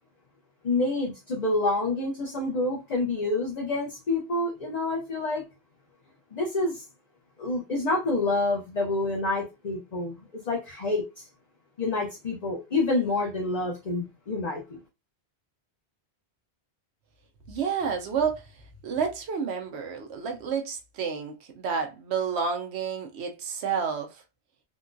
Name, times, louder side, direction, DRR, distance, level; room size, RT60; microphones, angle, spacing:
voice 1, 0.6-5.4 6.3-6.8 7.4-11.0 11.8-14.8, left 2 dB, 45° left, 0.7 m, -28 dB
voice 2, 17.5-18.5 18.8-24.2, right 6 dB, 75° right, 0.9 m, -30 dB
3.7 x 2.2 x 2.5 m
omnidirectional pair, 1.1 m